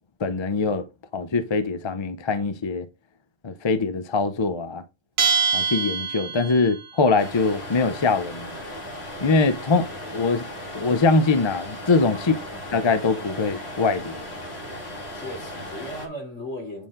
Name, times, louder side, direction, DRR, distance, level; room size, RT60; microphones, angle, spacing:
voice 1, 0.2-0.8 1.1-2.9 3.4-4.8 5.5-8.6 9.2-10.4 10.7-12.4 12.7-14.3, left 4 dB, 35° left, 0.4 m, -23 dB
Bell, 5.2-6.8, right 5 dB, 75° right, 1.3 m, -24 dB
sound 1, 7.2-16.1, left 1 dB, 50° left, 2.3 m, -37 dB
voice 2, 12.1-12.6 15.1-16.9, left 1 dB, 65° left, 3.6 m, -37 dB
9.1 x 4.4 x 3.7 m
omnidirectional pair, 1.4 m